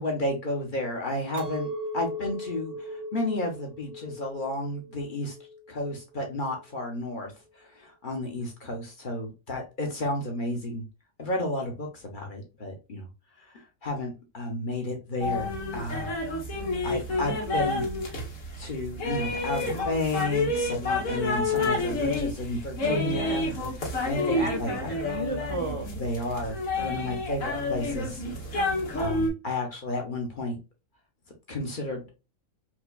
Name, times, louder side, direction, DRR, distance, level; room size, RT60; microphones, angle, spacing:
voice 1, 0.0-5.3 5.7-10.9 11.2-13.1 13.4-16.1 16.8-17.8 18.6-23.5 24.0-24.9 26.0-28.2 29.0-30.6 31.5-32.2, left 1 dB, 45° left, 2 dB, 0.9 m, -32 dB
Chink clink, 1.3-6.7, left 1 dB, 90° right, 1.9 m, -39 dB
sound 1, 15.2-29.3, left 2 dB, 85° left, 1.6 m, -29 dB
voice 2, 22.8-23.4 24.3-25.9, right 2 dB, 55° right, 1 dB, 0.3 m, -33 dB
4.5 x 2.3 x 2.3 m, 0.28 s
omnidirectional pair, 1.4 m